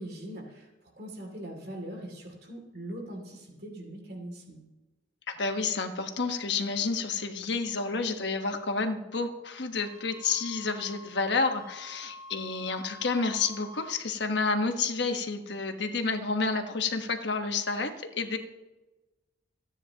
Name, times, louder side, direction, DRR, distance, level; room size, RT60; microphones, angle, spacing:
voice 1, 0.0-4.6, right 1 dB, 55° right, 1 dB, 2.6 m, -41 dB
voice 2, 5.3-18.4, left 4 dB, 70° left, 6 dB, 1.2 m, -30 dB
Wind instrument woodwind instrument, 9.8-14.1, left 1 dB, 20° right, 3.7 m, -48 dB
27.5 x 9.8 x 2.9 m, 1.1 s
head